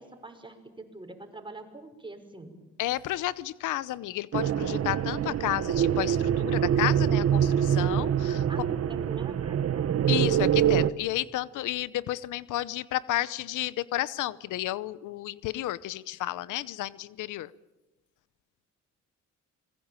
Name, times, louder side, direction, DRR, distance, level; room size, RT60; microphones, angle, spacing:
voice 1, 0.0-2.6 8.5-10.0, right 2 dB, 15° right, 5 dB, 5.9 m, -44 dB
voice 2, 2.8-8.4 10.1-17.5, left 15 dB, 85° left, 19 dB, 0.8 m, -32 dB
sound 1, 4.3-10.9, right 9 dB, 55° right, 1.2 m, -25 dB
27.0 x 21.0 x 9.0 m, 1.0 s
cardioid pair, 90°, 30 cm